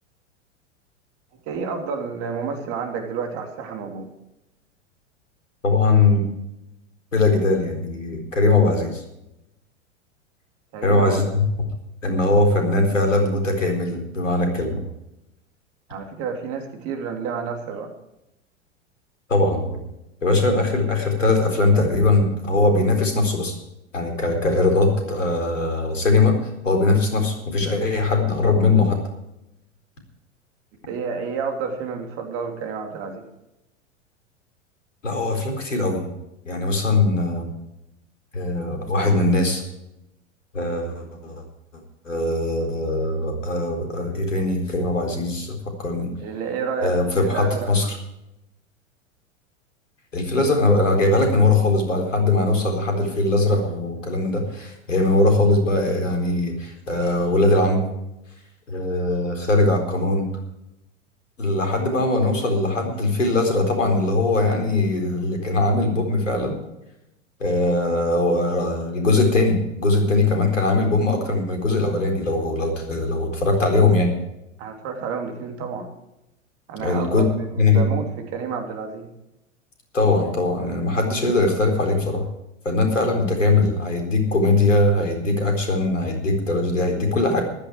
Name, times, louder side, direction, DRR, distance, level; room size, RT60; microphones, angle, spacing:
voice 1, 1.5-4.1 10.7-11.2 15.9-17.9 30.9-33.2 46.2-47.7 74.6-75.9 76.7-79.1, right 5 dB, 40° right, 4 dB, 3.1 m, -30 dB
voice 2, 5.6-6.2 7.1-9.0 10.8-11.5 12.0-14.8 19.3-19.7 20.2-23.5 23.9-26.3 26.6-29.0 35.0-36.1 36.5-37.5 38.3-39.6 40.5-41.4 42.0-46.1 46.8-47.9 50.1-57.8 58.7-60.3 61.4-66.5 67.4-74.1 76.8-77.3 77.6-77.9 79.9-82.3 82.6-87.4, left 2 dB, 75° left, 3 dB, 4.2 m, -20 dB
14.5 x 12.5 x 4.7 m, 0.88 s
figure-of-eight pair, 95°, 38 cm